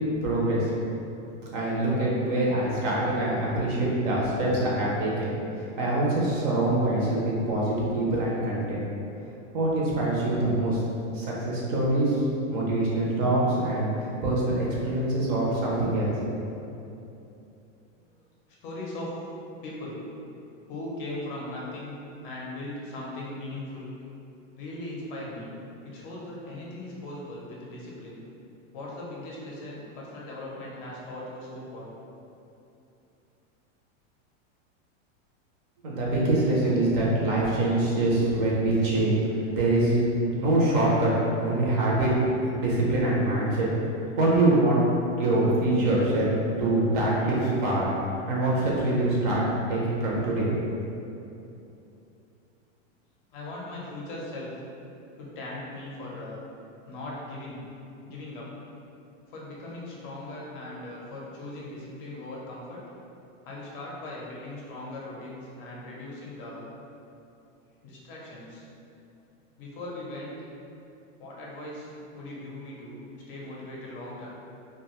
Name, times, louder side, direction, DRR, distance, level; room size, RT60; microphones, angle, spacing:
voice 1, 0.2-0.7 1.5-8.9 9.5-10.8 11.1-16.3 35.8-39.1 39.5-41.1 41.4-43.7 44.2-44.8 45.2-46.3 46.6-47.9 48.3-49.4 49.7-50.5, right 2 dB, 45° right, -5 dB, 0.6 m, -24 dB
voice 2, 18.6-19.1 19.6-20.0 20.7-21.9 22.2-23.9 24.6-25.5 25.8-28.2 28.7-31.9 53.3-54.5 55.2-56.4 56.8-57.6 58.0-58.5 59.3-62.8 63.4-66.7 67.8-68.7 69.6-70.4 71.2-74.3, left 1 dB, 45° left, -4 dB, 0.5 m, -39 dB
2.3 x 2.3 x 2.9 m, 2.8 s
supercardioid pair, 160°, 37 cm